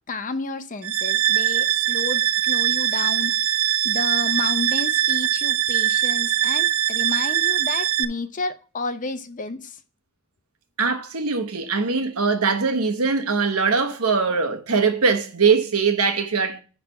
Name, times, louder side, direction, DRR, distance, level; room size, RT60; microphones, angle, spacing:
voice 1, 0.1-3.4 3.8-9.8, left 3 dB, 35° left, 0.7 m, -31 dB
sound 1, 0.8-8.0, right 12 dB, 65° right, 0.5 m, -22 dB
voice 2, 10.8-16.6, right 5 dB, 85° right, 1.2 m, -21 dB
10.0 x 3.4 x 5.5 m
head